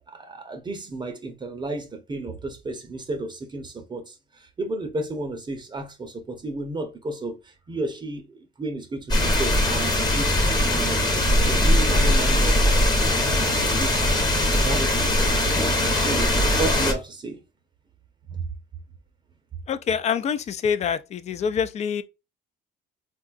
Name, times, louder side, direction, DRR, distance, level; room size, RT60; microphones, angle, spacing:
voice 1, 0.1-14.1 14.4-15.4 15.9-17.4 18.3-18.4, right 2 dB, 25° right, 0.6 m, -33 dB
sound 1, 9.1-16.9, left 1 dB, 25° left, 0.9 m, -21 dB
voice 2, 19.7-22.0, left 7 dB, 40° left, 0.4 m, -26 dB
3.7 x 2.3 x 2.4 m
cardioid pair, 110°, 17 cm